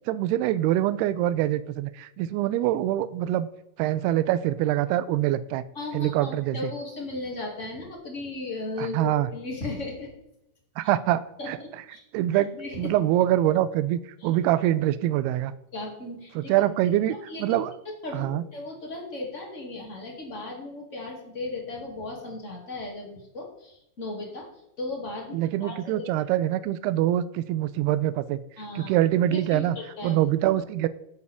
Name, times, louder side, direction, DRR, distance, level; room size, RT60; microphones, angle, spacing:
voice 1, 0.1-3.5 3.8-5.6 5.9-6.7 8.8-9.3 10.8-11.6 12.1-15.5 16.4-17.7 18.1-18.4 25.3-28.4 28.8-29.8 30.0-30.9, right 13 dB, 80° right, 15 dB, 2.5 m, -24 dB
voice 2, 5.7-10.1 11.4-12.0 12.5-12.9 14.2-14.3 15.7-16.5 17.1-17.6 18.0-24.5 24.8-26.1 28.6-28.9 29.3-30.2, left 2 dB, 25° left, -1 dB, 1.9 m, -36 dB
13.5 x 8.5 x 3.6 m, 0.81 s
omnidirectional pair, 4.7 m